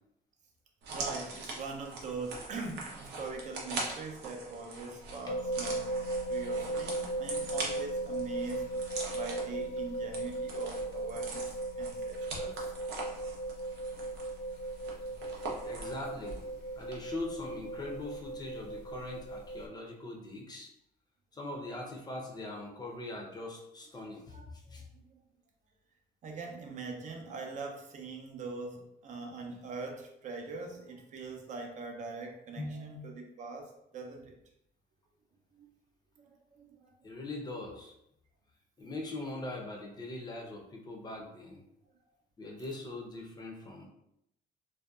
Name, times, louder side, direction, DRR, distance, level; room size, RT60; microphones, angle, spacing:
sound 1, 0.8-16.5 16.8-16.9, right 3 dB, 85° right, 0.7 m, -42 dB
voice 1, 0.9-8.7 9.1-11.4 11.8-12.6 24.3-24.5 26.2-34.4 35.6-35.7 36.2-36.9, right 4 dB, 45° right, 2 dB, 0.5 m, -42 dB
sound 2, 5.3-19.6, right 2 dB, 85° left, 0.4 m, -37 dB
voice 2, 15.6-16.5 16.8-20.7 21.3-24.8 32.6-33.0 37.0-37.9 38.8-41.6 42.4-43.9, left 2 dB, 25° left, 0 dB, 0.5 m, -41 dB
2.6 x 2.1 x 2.3 m, 0.79 s
cardioid pair, 110°, 17 cm